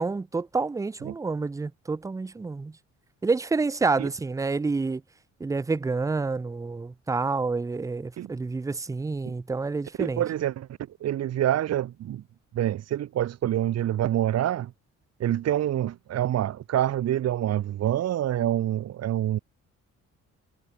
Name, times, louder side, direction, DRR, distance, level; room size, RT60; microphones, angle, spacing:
voice 1, 0.0-2.8 3.2-5.0 5.4-10.2, right 4 dB, 10° right, 0.4 m, -28 dB
voice 2, 10.0-10.7 11.0-12.2 12.5-14.7 15.2-19.4, right 12 dB, 55° right, 0.8 m, -26 dB
cardioid pair, 90°, 30 cm